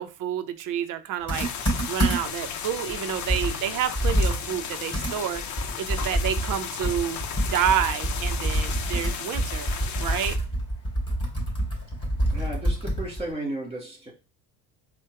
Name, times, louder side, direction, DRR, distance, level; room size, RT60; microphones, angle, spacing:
voice 1, 0.0-1.5 1.9-5.4 5.8-9.7 10.0-10.4, right 9 dB, 55° right, 0.6 m, -29 dB
sound 1, 1.3-10.4, left 7 dB, 50° left, 0.7 m, -35 dB
Computer keyboard, 1.3-2.5 2.9-3.0 3.3-6.6 6.8-13.3, right 1 dB, 15° left, 2.7 m, -27 dB
voice 2, 12.3-14.1, right 1 dB, 15° right, 2.2 m, -34 dB
4.4 x 2.2 x 4.6 m
supercardioid pair, 105°, 38 cm